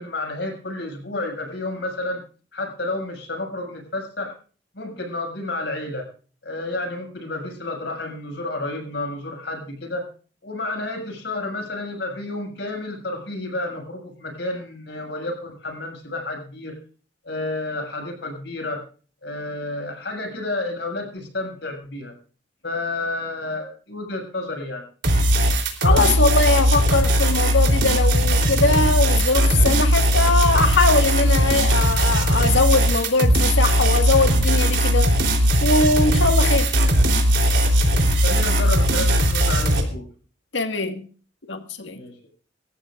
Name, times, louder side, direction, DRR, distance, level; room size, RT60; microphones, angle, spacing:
voice 1, 0.0-2.2 2.5-4.3 4.7-6.1 6.4-10.0 10.4-16.8 17.2-18.8 19.2-22.1 22.6-24.8 38.2-40.1 41.9-42.1, left 2 dB, 70° left, 6.6 m, -30 dB
sound 1, 25.0-39.8, equal, 75° right, 3.6 m, -18 dB
voice 2, 25.8-35.1 35.6-36.7 40.5-41.0 41.5-42.0, left 3 dB, 85° left, 1.8 m, -21 dB
27.0 x 14.0 x 2.5 m
head